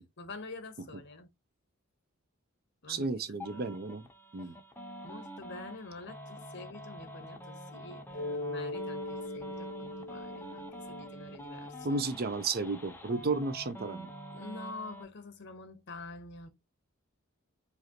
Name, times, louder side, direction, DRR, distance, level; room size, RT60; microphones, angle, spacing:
voice 1, 0.2-1.3 2.8-3.8 5.0-12.0 14.3-16.5, left 3 dB, 55° left, 1.1 m, -47 dB
voice 2, 2.9-4.1 4.3-4.6 11.8-14.1, right 3 dB, 45° right, 0.6 m, -33 dB
sound 1, 3.4-15.0, right 1 dB, 10° left, 0.8 m, -46 dB
Mallet percussion, 8.1-12.6, left 2 dB, 35° left, 2.4 m, -41 dB
5.0 x 2.7 x 2.9 m
head